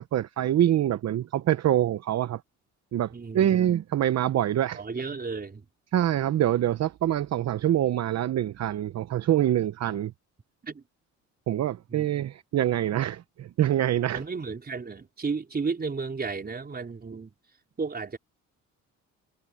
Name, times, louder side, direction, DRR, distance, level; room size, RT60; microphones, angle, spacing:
voice 1, 0.0-2.4 2.9-5.1 5.9-10.1 11.5-14.2, right 11 dB, 60° right, 0.9 m, -25 dB
voice 2, 3.1-3.6 4.8-5.6 10.6-10.8 11.9-12.1 14.1-17.3 17.8-18.2, right 4 dB, 30° right, 4.4 m, -33 dB
cardioid pair, 90°, 30 cm